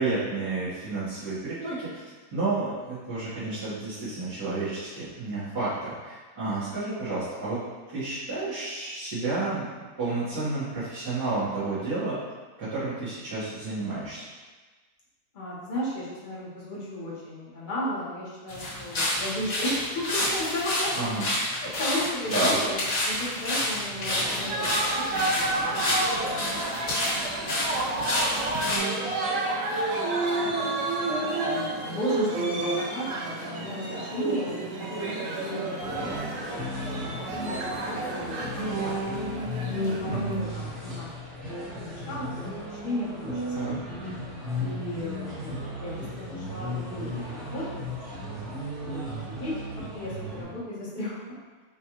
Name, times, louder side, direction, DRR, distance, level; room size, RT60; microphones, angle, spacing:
voice 1, 0.0-2.0 2.3-7.6 7.9-12.2 12.6-14.2 20.9-21.3 22.3-22.6 40.0-40.4 43.5-43.8, right 3 dB, 80° right, -14 dB, 1.9 m, -31 dB
voice 2, 15.3-20.9 21.6-22.8 23.0-26.6 26.9-27.1 27.4-27.9 30.6-30.7 31.1-35.1 35.4-36.1 36.5-39.0 39.7-41.2 41.5-42.3 42.6-43.9 44.6-45.5 45.8-47.9 48.3-51.2, left 1 dB, 35° left, -7 dB, 0.9 m, -35 dB
sound 1, 18.5-28.8, left 1 dB, 75° left, 2.0 m, -29 dB
sound 2, 24.1-40.4, right 2 dB, 65° right, 0.9 m, -30 dB
sound 3, 35.8-50.4, equal, ahead, 0.7 m, -36 dB
5.1 x 2.3 x 2.9 m, 1.3 s
omnidirectional pair, 1.7 m